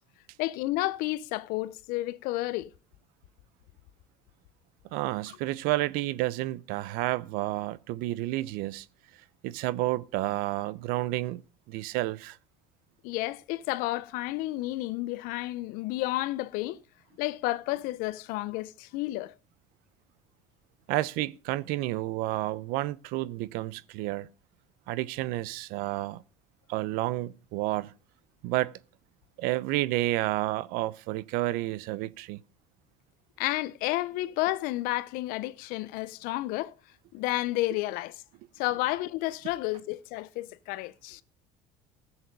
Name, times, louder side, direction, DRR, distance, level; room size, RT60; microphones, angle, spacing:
voice 1, 0.4-2.7 13.0-16.8 17.2-19.3 33.4-36.7 37.1-38.2 38.6-41.2, left 18 dB, 75° left, 0.6 m, -31 dB
voice 2, 4.9-8.9 9.4-11.4 11.7-12.4 20.9-24.3 24.9-26.2 26.7-27.9 28.4-28.8 29.4-32.4, right 17 dB, 75° right, 0.6 m, -30 dB
15.5 x 7.1 x 5.2 m
supercardioid pair, 100°, 15 cm